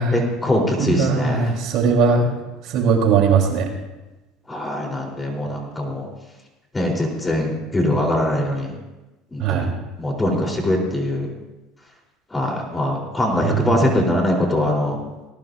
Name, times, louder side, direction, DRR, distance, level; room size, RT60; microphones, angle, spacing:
voice 1, 0.1-1.5 4.5-6.1 6.7-8.8 9.3-9.7 10.0-11.3 12.3-15.0, left 1 dB, 15° left, 0 dB, 3.7 m, -22 dB
voice 2, 0.8-2.3 2.7-3.7 9.4-9.7 13.4-13.7, right 5 dB, 60° right, 1 dB, 3.6 m, -19 dB
19.0 x 18.0 x 2.6 m, 1.1 s
supercardioid pair, 110°, 0 cm